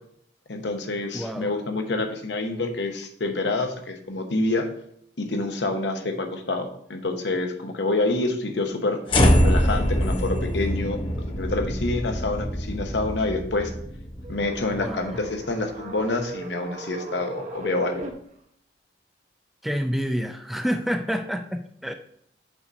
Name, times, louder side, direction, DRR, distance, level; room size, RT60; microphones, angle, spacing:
voice 1, 0.5-4.7 5.2-9.0 9.4-11.0 11.4-13.7 14.3-18.1, left 2 dB, 80° left, 5 dB, 0.9 m, -27 dB
voice 2, 1.1-1.5 14.7-15.2 19.6-21.9, equal, ahead, 6 dB, 0.3 m, -28 dB
sound 1, 9.1-15.4, equal, 30° left, 0.7 m, -24 dB
sound 2, 14.2-18.1, right 2 dB, 40° right, 0.8 m, -37 dB
5.8 x 4.1 x 5.0 m, 0.69 s
head